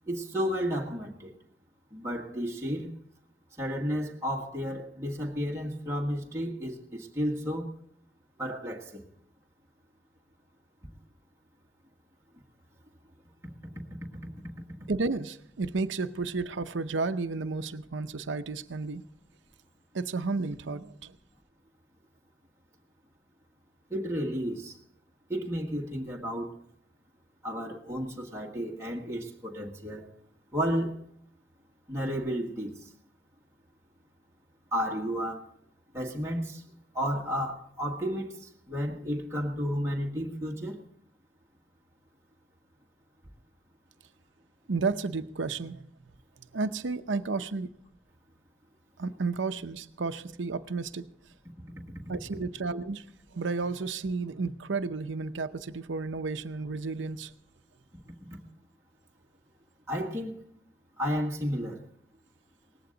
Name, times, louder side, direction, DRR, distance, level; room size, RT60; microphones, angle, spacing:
voice 1, 0.1-1.3 1.9-2.9 3.6-7.7 8.4-9.0 14.2-14.3 23.9-24.8 25.3-26.5 27.4-30.1 30.5-30.9 31.9-32.9 34.7-35.5 35.9-36.6 36.9-40.8 59.9-60.4 61.0-61.8, equal, 15° right, 1.6 m, -32 dB
voice 2, 14.9-19.0 19.9-21.2 44.7-45.8 46.5-47.7 49.0-51.1 52.1-53.1 53.3-57.3, right 3 dB, 90° right, 0.7 m, -32 dB
18.5 x 15.5 x 3.9 m
head